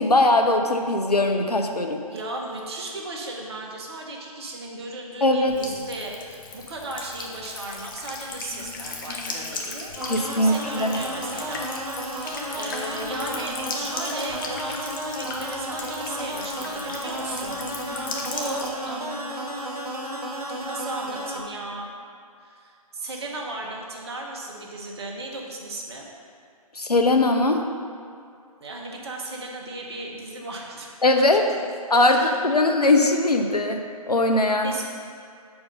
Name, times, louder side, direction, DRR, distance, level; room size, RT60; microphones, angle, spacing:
voice 1, 0.0-2.0 5.2-5.5 10.1-11.0 26.8-27.6 31.0-31.4 31.9-33.8 34.1-34.7, left 2 dB, 85° left, 4 dB, 0.7 m, -20 dB
voice 2, 2.1-19.9 20.6-21.9 22.4-26.1 28.6-30.9 31.5-31.6 32.0-32.4 34.6-34.9, right 2 dB, 45° right, -1 dB, 1.0 m, -36 dB
Buzz / Water tap faucet / Trickle dribble, 5.5-18.7, left 4 dB, 35° left, 0.7 m, -37 dB
sound 1, 10.0-21.4, right 1 dB, 75° right, 1.4 m, -33 dB
5.3 x 4.7 x 5.3 m, 2.4 s
figure-of-eight pair, 135°, 19 cm